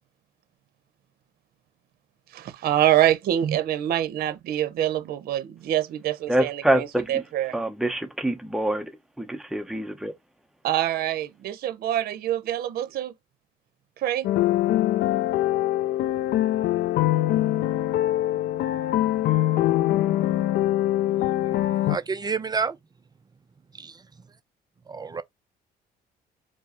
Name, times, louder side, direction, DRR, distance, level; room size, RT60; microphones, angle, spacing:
voice 1, 2.3-7.5 10.6-13.1 14.0-14.3, right 12 dB, 65° right, 0.7 m, -25 dB
voice 2, 6.3-7.1 7.5-8.9 9.2-10.1, right 1 dB, ahead, 0.9 m, -25 dB
sound 1, 14.2-22.0, left 14 dB, 65° left, 0.4 m, -23 dB
voice 3, 21.9-22.8 23.7-24.0 24.9-25.2, right 5 dB, 25° right, 0.4 m, -29 dB
4.6 x 2.0 x 4.1 m
cardioid pair, 110°, 17 cm